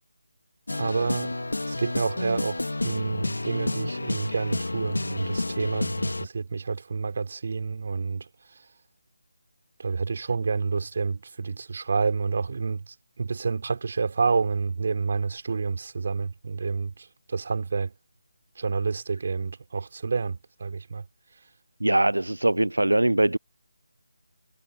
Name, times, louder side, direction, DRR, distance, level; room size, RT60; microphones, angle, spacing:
sound 1, 0.7-6.3, left 2 dB, 75° left, 2.2 m, -30 dB
voice 1, 0.7-1.3 1.7-8.3 9.8-16.9 17.3-17.9 18.6-21.0, right 4 dB, 50° right, 4.8 m, -29 dB
voice 2, 21.8-23.4, right 1 dB, 85° right, 0.6 m, -22 dB
figure-of-eight pair, 155°, 0 cm